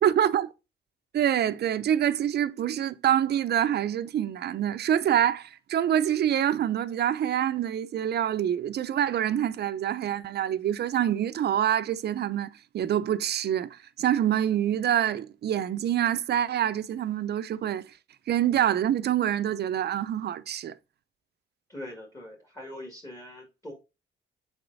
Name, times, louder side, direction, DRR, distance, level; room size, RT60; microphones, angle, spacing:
voice 1, 0.0-0.5 1.1-17.9 18.3-20.7, right 10 dB, 55° right, 0.6 m, -26 dB
voice 2, 21.7-23.7, left 1 dB, 15° left, 1.9 m, -42 dB
6.9 x 4.4 x 4.0 m
cardioid pair, 90°, 20 cm